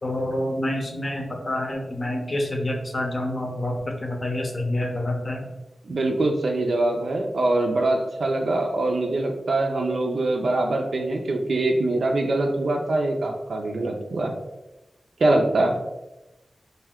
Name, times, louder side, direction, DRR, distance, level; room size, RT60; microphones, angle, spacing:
voice 1, 0.0-5.4, left 1 dB, 45° left, 1 dB, 0.7 m, -27 dB
voice 2, 5.8-14.3 15.2-15.8, right 2 dB, 80° right, 2 dB, 0.3 m, -23 dB
2.6 x 2.2 x 3.5 m, 0.99 s
cardioid pair, 60°, 0 cm